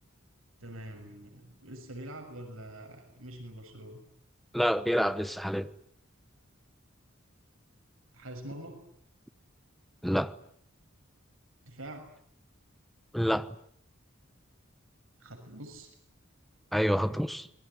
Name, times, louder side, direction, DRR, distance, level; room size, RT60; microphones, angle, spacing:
voice 1, 0.6-4.0 8.1-8.9 11.6-12.1 15.2-15.9, right 1 dB, 85° right, 6.8 m, -45 dB
voice 2, 4.5-5.7 10.0-10.3 13.1-13.5 16.7-17.5, equal, ahead, 1.2 m, -28 dB
27.5 x 22.0 x 9.6 m
head